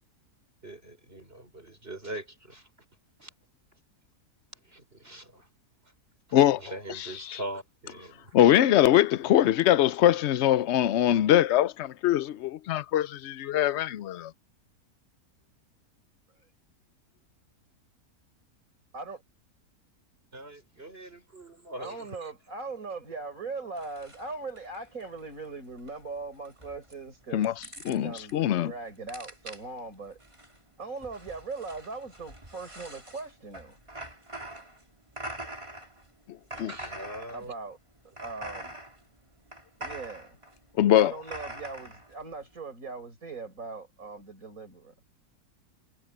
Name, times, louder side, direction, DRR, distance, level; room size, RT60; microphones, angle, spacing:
voice 1, 0.6-2.7 3.2-3.3 4.6-5.5 6.3-8.3 9.2-9.4 20.3-22.3 36.6-37.5, right 1 dB, 40° right, 5.7 m, -42 dB
voice 2, 7.0-7.4 8.3-14.3 27.3-27.5 27.9-28.7 36.6-36.7 40.8-41.1, left 12 dB, 60° left, 0.7 m, -22 dB
voice 3, 21.8-27.5 27.8-30.2 30.8-33.8 37.3-37.8 38.2-38.8 39.8-40.4 41.0-44.9, right 3 dB, 60° right, 6.2 m, -40 dB
sound 1, 23.8-42.5, right 1 dB, 20° right, 3.4 m, -45 dB
omnidirectional pair, 1.6 m